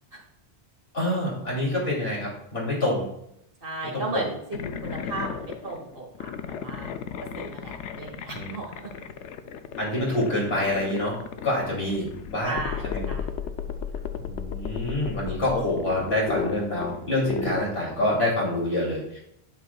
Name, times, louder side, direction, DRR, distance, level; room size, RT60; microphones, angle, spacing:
voice 1, 0.9-3.0 3.9-4.2 8.3-8.5 9.8-12.6 12.8-13.1 14.2-19.2, left 1 dB, 65° left, -4 dB, 3.1 m, -27 dB
voice 2, 3.6-6.9 7.2-8.9 12.4-13.3, right 3 dB, 55° right, -2 dB, 1.8 m, -35 dB
sound 1, 4.5-18.3, left 8 dB, 90° left, 0.9 m, -35 dB
9.1 x 7.9 x 2.3 m, 0.78 s
omnidirectional pair, 1.2 m